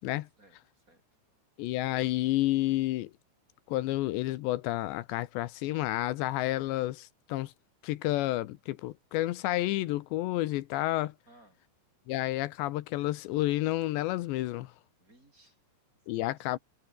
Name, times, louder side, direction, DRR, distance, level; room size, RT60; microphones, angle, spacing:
voice 1, 0.4-1.0 11.3-11.6 15.0-15.6 16.2-16.6, right 1 dB, 20° right, 5.0 m, -61 dB
voice 2, 1.6-3.1 3.7-7.5 7.8-11.1 12.1-14.7 16.1-16.6, left 16 dB, 80° left, 3.1 m, -30 dB
omnidirectional pair, 5.2 m